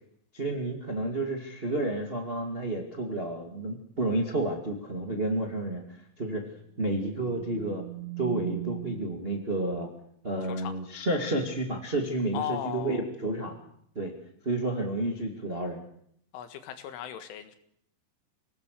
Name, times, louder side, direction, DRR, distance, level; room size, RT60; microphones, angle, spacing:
voice 1, 0.3-6.4 6.8-7.8 8.2-9.9 10.2-13.5 13.9-14.1 14.4-15.8, right 2 dB, 55° right, 2 dB, 0.6 m, -30 dB
sound 1, 7.0-9.5, right 22 dB, 85° right, 3.8 m, -39 dB
voice 2, 12.3-13.0 16.3-17.6, left 10 dB, 80° left, 9 dB, 4.1 m, -36 dB
26.5 x 18.5 x 6.7 m, 0.68 s
omnidirectional pair, 5.6 m